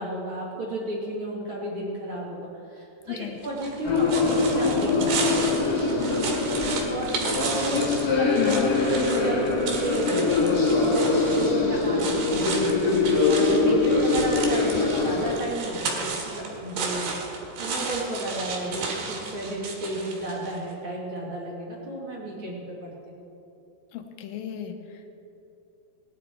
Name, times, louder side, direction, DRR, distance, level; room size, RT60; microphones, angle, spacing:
voice 1, 0.0-12.7 13.3-17.1 17.6-23.2, right 1 dB, 40° right, -4 dB, 2.0 m, -33 dB
voice 2, 3.1-3.4 8.4-8.7 23.9-25.1, left 11 dB, 75° left, 6 dB, 2.2 m, -33 dB
sound 1, 3.4-20.6, right 4 dB, 70° right, 3.5 m, -33 dB
sound 2, 3.8-15.4, left 3 dB, 55° left, 1.1 m, -23 dB
19.0 x 10.5 x 4.5 m, 2.8 s
omnidirectional pair, 4.8 m